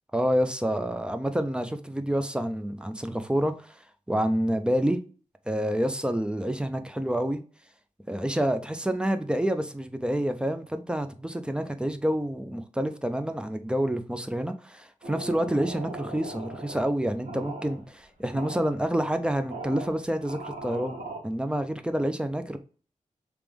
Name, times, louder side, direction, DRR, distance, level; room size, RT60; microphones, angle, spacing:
voice 1, 0.1-3.8 4.1-5.0 5.5-7.4 8.1-21.0 21.2-22.6, equal, 5° right, 0.4 m, -28 dB
sound 1, 15.0-16.8 17.2-17.8 18.3-18.8 19.5-21.2, right 2 dB, 85° right, 1.6 m, -39 dB
3.4 x 3.0 x 3.4 m
wide cardioid pair, 150°, 13 cm